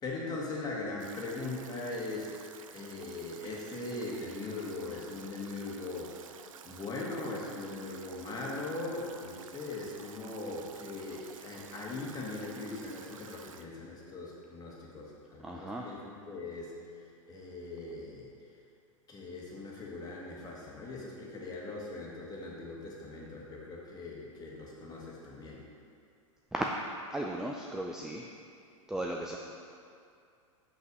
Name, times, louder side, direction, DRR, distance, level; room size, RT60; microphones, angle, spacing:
voice 1, 0.0-2.4 2.7-6.4 6.6-16.8 17.3-18.3 19.1-25.6, left 2 dB, 25° left, -3 dB, 1.8 m, -40 dB
Stream / Drip / Trickle dribble, 1.0-13.6, right 7 dB, 85° right, 0.5 m, -52 dB
voice 2, 15.4-15.9 26.5-26.7 27.1-28.3 28.9-29.4, right 1 dB, 5° right, 0 dB, 0.4 m, -35 dB
6.0 x 5.7 x 5.4 m, 2.4 s
hypercardioid pair, 115°, 17 cm